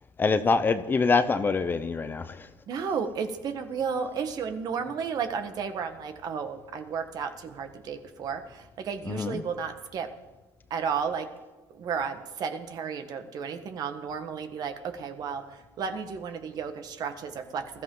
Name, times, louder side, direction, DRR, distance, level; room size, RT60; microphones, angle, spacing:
voice 1, 0.2-2.5 9.1-9.4, left 4 dB, 25° left, 11 dB, 0.7 m, -25 dB
voice 2, 2.7-10.1 10.7-11.3 11.7-17.8, right 6 dB, 50° right, 8 dB, 1.5 m, -33 dB
20.5 x 14.0 x 3.9 m, 1.2 s
cardioid pair, 120°, 9 cm